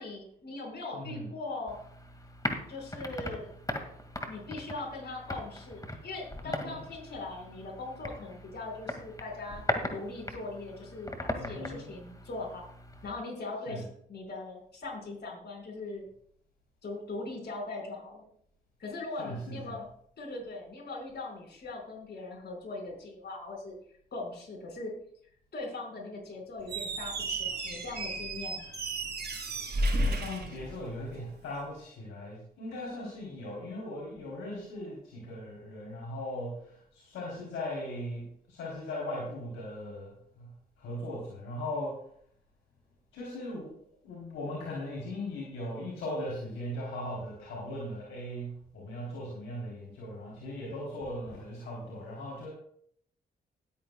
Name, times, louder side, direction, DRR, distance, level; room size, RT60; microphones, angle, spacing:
voice 1, 0.0-1.8 2.7-3.5 4.3-9.6 9.9-12.7 13.0-16.0 16.8-18.3 18.8-19.9 20.2-23.7 24.1-24.9 25.5-28.7, left 2 dB, 55° left, 0 dB, 5.1 m, -40 dB
voice 2, 0.9-1.3 6.4-6.8 11.4-11.9 13.7-13.9 19.2-19.8 29.7-40.5 40.8-41.9 43.1-43.7 44.0-52.5, left 1 dB, 70° left, -4 dB, 3.3 m, -39 dB
sound 1, 1.7-13.1, left 1 dB, 15° left, 2.0 m, -39 dB
Squeak, 26.6-31.3, right 1 dB, 50° right, 3.7 m, -33 dB
19.5 x 8.7 x 2.3 m, 0.64 s
hypercardioid pair, 40°, 21 cm